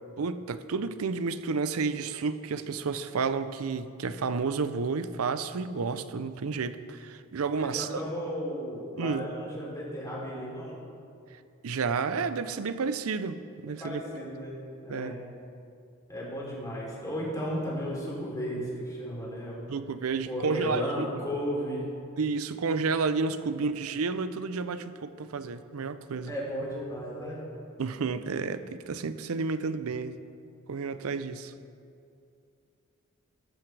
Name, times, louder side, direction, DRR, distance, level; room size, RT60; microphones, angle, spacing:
voice 1, 0.2-8.0 9.0-9.3 11.6-14.0 14.9-15.1 19.7-21.1 22.2-26.3 27.8-30.2 30.7-31.5, right 4 dB, 70° right, 12 dB, 0.5 m, -31 dB
voice 2, 7.6-10.8 13.8-15.2 16.1-19.6 20.2-21.8 26.3-27.4, equal, 15° left, -5 dB, 3.1 m, -34 dB
14.5 x 10.5 x 3.3 m, 2.5 s
head